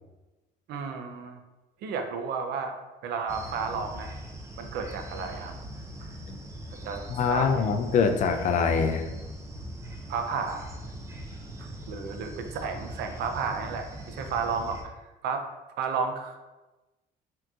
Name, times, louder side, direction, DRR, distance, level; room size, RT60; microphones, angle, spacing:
voice 1, 0.7-1.4 1.8-2.7 3.0-4.1 4.6-5.5 6.0-6.1 6.8-7.0 7.3-7.7 10.1-10.7 11.6-14.8 15.2-15.4 15.8-16.4, right 5 dB, 75° right, 5 dB, 0.5 m, -32 dB
sound 1, 3.3-14.8, right 1 dB, 15° right, 0.5 m, -41 dB
voice 2, 7.1-9.1, left 5 dB, 45° left, 5 dB, 0.4 m, -24 dB
3.6 x 2.8 x 2.3 m, 1.1 s
cardioid pair, 110°, 17 cm